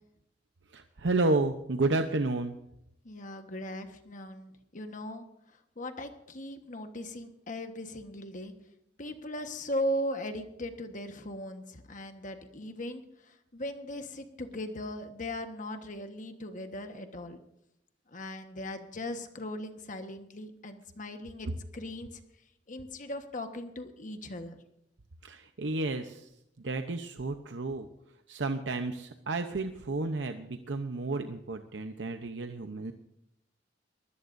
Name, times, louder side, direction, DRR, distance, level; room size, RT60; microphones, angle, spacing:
voice 1, 0.7-2.5 25.2-26.3 26.6-27.9 28.3-32.9, right 2 dB, 90° right, 7 dB, 0.8 m, -31 dB
voice 2, 3.0-5.2 5.8-8.5 9.0-17.4 18.1-22.2 22.7-24.6, left 1 dB, 45° left, 6 dB, 1.4 m, -38 dB
22.5 x 16.5 x 2.7 m, 0.80 s
head